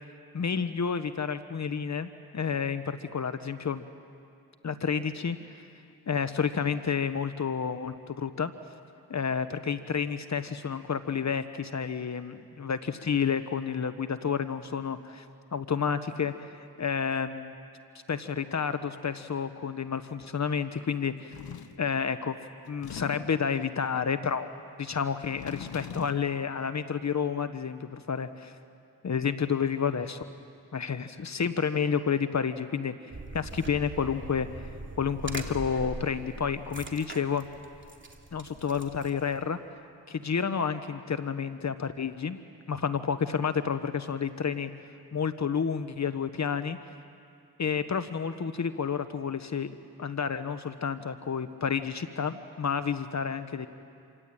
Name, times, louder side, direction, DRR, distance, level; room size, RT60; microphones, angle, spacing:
voice 1, 0.3-3.8 4.6-5.4 6.1-8.5 9.1-15.2 15.5-17.5 18.1-21.4 21.8-22.4 22.7-24.5 24.8-28.5 29.0-30.2 30.7-32.9 33.3-34.5 35.0-37.5 38.3-39.6 40.1-42.4 42.7-44.7 45.1-46.8 47.6-49.7 50.0-53.7, left 6 dB, 50° left, 11 dB, 1.2 m, -30 dB
sound 1, 21.3-21.9 22.7-23.5 25.1-26.3, left 9 dB, 80° left, 1.0 m, -41 dB
sound 2, 33.1-39.4, right 3 dB, 30° right, 2.9 m, -42 dB
28.0 x 24.0 x 9.0 m, 2.4 s
cardioid pair, 65°, 36 cm